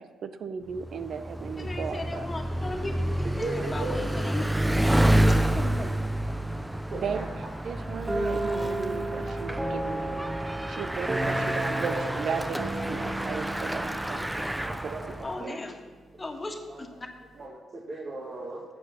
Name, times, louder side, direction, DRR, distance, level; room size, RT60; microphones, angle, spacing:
voice 1, 0.0-2.3 7.0-15.6, right 6 dB, 65° right, 11 dB, 0.8 m, -36 dB
Bicycle, 0.7-15.4, right 1 dB, 10° right, 0.6 m, -29 dB
voice 2, 1.6-3.0 3.4-4.4 5.1-6.0 15.2-15.8 16.2-17.1, left 2 dB, 25° left, 4 dB, 1.7 m, -36 dB
voice 3, 3.4-4.1 5.1-5.3 5.8-5.9 6.9-7.2 7.7-7.8 9.3-9.6 11.7-12.0 12.3-12.4 14.8-15.1 16.7-16.8 17.4-18.6, right 2 dB, 50° right, -3 dB, 1.9 m, -37 dB
sound 1, 8.1-15.8, right 1 dB, 25° right, 1.8 m, -33 dB
12.0 x 7.9 x 6.0 m, 1.4 s
cardioid pair, 65°, 0 cm